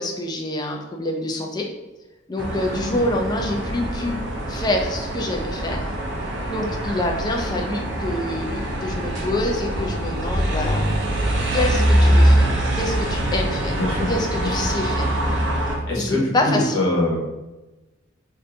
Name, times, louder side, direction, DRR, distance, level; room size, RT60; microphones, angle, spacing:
voice 1, 0.0-1.7 2.3-4.2 4.5-5.9 6.5-10.8 11.5-13.8 14.1-15.1 16.0-16.8, left 1 dB, 20° left, 2 dB, 0.4 m, -26 dB
sound 1, 2.4-15.8, right 1 dB, 60° right, 0.6 m, -23 dB
voice 2, 13.7-14.7 15.9-17.2, left 1 dB, 80° left, -3 dB, 0.9 m, -24 dB
2.6 x 2.6 x 3.3 m, 1.1 s
head